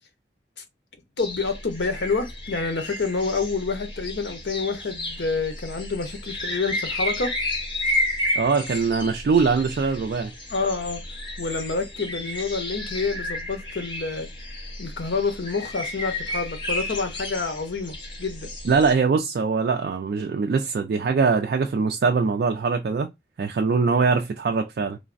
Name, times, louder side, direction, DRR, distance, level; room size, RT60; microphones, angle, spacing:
voice 1, 1.2-7.3 10.5-11.0 11.4-14.3 14.8-18.5, left 4 dB, 80° left, 0.7 m, -28 dB
sound 1, 1.2-18.9, left 1 dB, 25° left, 0.7 m, -32 dB
voice 2, 8.4-10.3 18.6-23.1 23.4-25.0, right 5 dB, 60° right, 0.3 m, -22 dB
3.2 x 2.0 x 2.4 m
head